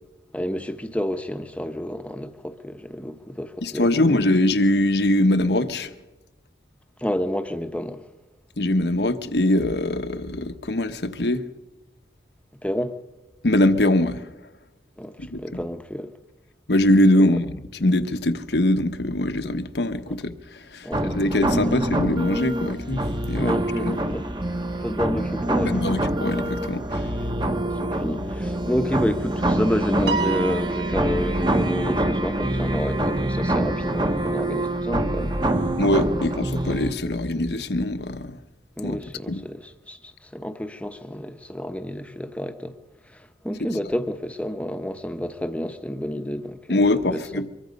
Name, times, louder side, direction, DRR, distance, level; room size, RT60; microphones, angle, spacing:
voice 1, 0.3-4.2 7.0-8.0 12.6-13.0 15.0-16.1 20.1-20.2 20.8-21.8 23.4-24.2 24.8-26.0 27.4-35.4 38.8-42.7 43.1-46.8 47.1-47.4, equal, 5° left, 1.0 m, -30 dB
voice 2, 3.6-5.9 8.6-11.4 13.4-14.2 15.2-15.4 16.7-20.3 20.7-23.0 23.3-23.9 25.6-27.0 35.8-38.4 38.8-39.0 39.3-39.4 46.7-47.5, left 1 dB, 70° left, 1.1 m, -22 dB
sound 1, 20.9-36.9, right 1 dB, 25° right, 1.2 m, -25 dB
Piano, 30.1-31.6, right 5 dB, 75° right, 1.3 m, -29 dB
24.0 x 22.5 x 5.3 m
head